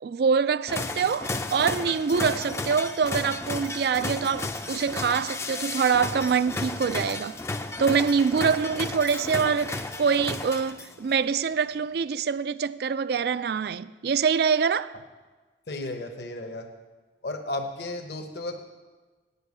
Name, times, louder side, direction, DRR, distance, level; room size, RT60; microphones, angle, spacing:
voice 1, 0.0-7.4 7.8-14.9, right 6 dB, 55° right, 0.3 m, -25 dB
sound 1, 0.7-11.1, left 2 dB, 15° left, 0.4 m, -33 dB
Shatter, 9.1-9.6, left 8 dB, 85° left, 1.2 m, -45 dB
voice 2, 15.7-16.7 17.2-18.6, left 2 dB, 60° left, 0.9 m, -33 dB
9.4 x 6.9 x 8.2 m
head